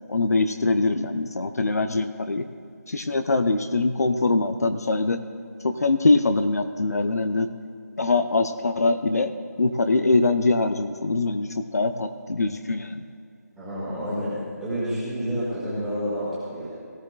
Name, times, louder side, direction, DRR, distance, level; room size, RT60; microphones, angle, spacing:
voice 1, 0.1-2.5 2.9-5.2 5.6-7.5 8.0-13.0, left 3 dB, 65° left, 8 dB, 0.7 m, -23 dB
voice 2, 13.6-16.7, equal, ahead, -11 dB, 1.9 m, -29 dB
17.5 x 13.5 x 2.4 m, 2.4 s
figure-of-eight pair, 175°, 9 cm